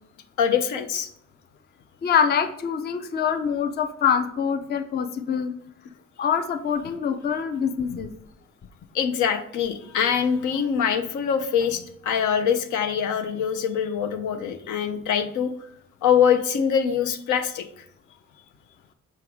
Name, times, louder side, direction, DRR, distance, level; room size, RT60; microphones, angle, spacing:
voice 1, 0.4-1.1 8.9-15.5 16.0-17.7, left 7 dB, 75° left, 7 dB, 0.7 m, -23 dB
voice 2, 2.0-5.5 6.2-8.1, left 7 dB, 35° left, 9 dB, 0.5 m, -24 dB
6.1 x 4.6 x 3.6 m, 0.67 s
cardioid pair, 90°, 30 cm